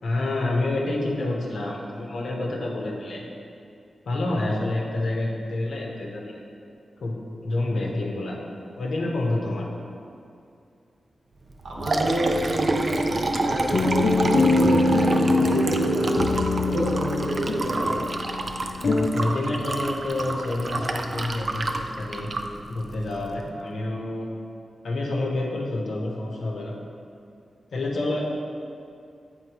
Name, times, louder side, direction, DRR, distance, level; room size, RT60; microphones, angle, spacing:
voice 1, 0.0-3.3 4.0-6.4 7.0-7.2 7.4-8.4 8.8-9.7 19.1-22.3 22.7-24.3 24.8-26.8 27.7-28.2, left 2 dB, 80° left, -1 dB, 0.9 m, -28 dB
Liquid, 11.5-23.4, right 2 dB, 45° right, 0.3 m, -28 dB
voice 2, 11.6-18.0, right 1 dB, 85° right, -3 dB, 1.1 m, -29 dB
sound 1, 13.1-19.1, left 2 dB, 55° left, 0.4 m, -24 dB
8.1 x 4.2 x 3.0 m, 2.5 s
wide cardioid pair, 110°, 0 cm